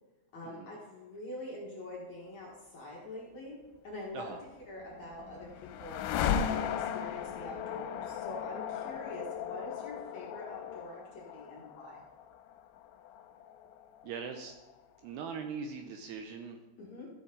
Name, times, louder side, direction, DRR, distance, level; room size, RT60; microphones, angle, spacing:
voice 1, 0.3-3.6 3.8-4.4 4.7-6.0 6.5-12.0 16.8-17.1, left 1 dB, 55° left, -4 dB, 2.2 m, -45 dB
sound 1, 4.7-14.7, left 8 dB, 85° left, 2.9 m, -37 dB
voice 2, 14.0-14.5 15.0-16.6, right 6 dB, 80° right, 5 dB, 2.5 m, -41 dB
14.0 x 8.4 x 3.8 m, 1.2 s
omnidirectional pair, 5.2 m